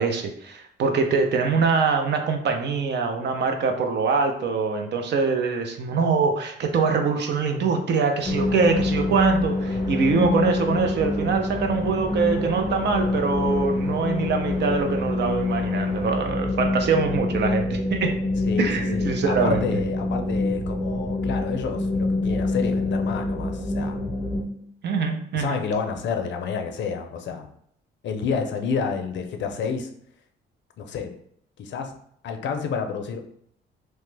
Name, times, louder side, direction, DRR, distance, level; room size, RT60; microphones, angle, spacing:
voice 1, 0.0-18.1 18.6-19.7 24.8-25.6, right 4 dB, 60° right, 5 dB, 0.6 m, -23 dB
sound 1, 8.2-16.3, equal, 35° right, 1.3 m, -42 dB
sound 2, 8.3-24.4, left 2 dB, 20° left, 0.5 m, -26 dB
voice 2, 18.5-24.0 25.3-27.5 28.0-29.9 30.8-31.1 31.6-31.9 32.2-33.3, left 6 dB, 65° left, 5 dB, 0.5 m, -29 dB
3.0 x 2.1 x 3.2 m, 0.67 s
cardioid pair, 90°, 20 cm